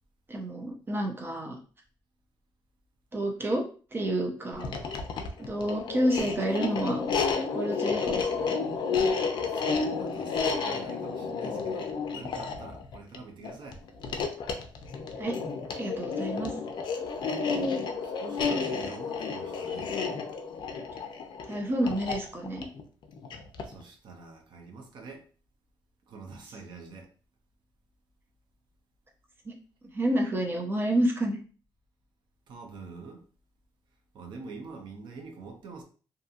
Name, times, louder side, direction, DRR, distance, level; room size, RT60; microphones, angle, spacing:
voice 1, 0.3-1.6 3.1-3.6 3.9-4.7 5.4-7.1 7.5-8.6 15.2-15.4 15.8-16.5 21.5-22.6 29.5-29.6 29.9-31.4, right 1 dB, 25° right, 0.5 m, -29 dB
sound 1, 4.5-23.8, left 5 dB, 65° left, 0.4 m, -31 dB
voice 2, 9.5-13.8 17.5-17.7 18.0-20.0 23.6-25.2 26.1-27.1 32.5-33.2 34.1-35.8, right 4 dB, 70° right, 0.6 m, -45 dB
2.6 x 2.6 x 2.4 m
cardioid pair, 130°, 8 cm